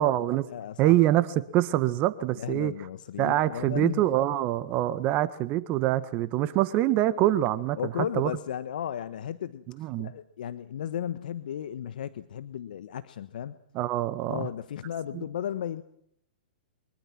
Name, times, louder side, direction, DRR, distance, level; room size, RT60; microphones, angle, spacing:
voice 1, 0.0-0.5 0.8-2.7 3.2-8.3 9.8-10.1 13.7-14.5 15.1-15.2, right 14 dB, 35° right, 1.5 m, -25 dB
voice 2, 0.5-0.9 2.4-4.0 7.8-9.6 10.0-13.6 14.3-15.8, left 10 dB, 70° left, 1.3 m, -34 dB
24.5 x 22.0 x 6.0 m
hypercardioid pair, 125°, 5 cm